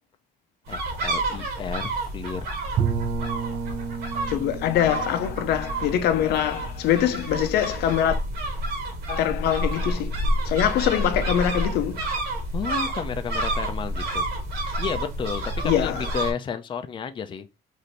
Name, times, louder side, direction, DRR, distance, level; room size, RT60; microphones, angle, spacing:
voice 1, 0.7-2.5 12.5-14.3 14.8-17.5, left 7 dB, 30° left, 0.5 m, -32 dB
sound 1, 0.7-16.3, right 1 dB, 80° right, 1.5 m, -29 dB
Bowed string instrument, 2.8-7.6, right 6 dB, 45° right, 0.6 m, -32 dB
voice 2, 4.3-8.2 9.1-10.1 10.4-12.0 15.6-16.1, left 10 dB, 85° left, 0.6 m, -23 dB
4.2 x 2.7 x 3.2 m
cardioid pair, 135°, 16 cm